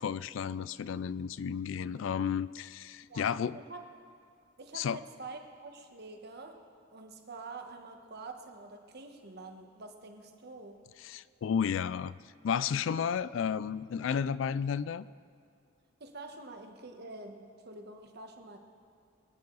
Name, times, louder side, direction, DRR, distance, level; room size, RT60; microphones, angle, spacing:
voice 1, 0.0-3.6 4.7-5.0 11.0-12.2 12.4-15.1, left 7 dB, 70° left, 18 dB, 0.3 m, -32 dB
voice 2, 3.1-3.9 4.6-6.6 6.9-10.8 16.0-18.6, right 3 dB, 55° right, 4 dB, 1.3 m, -47 dB
24.0 x 9.6 x 4.0 m, 2.4 s
head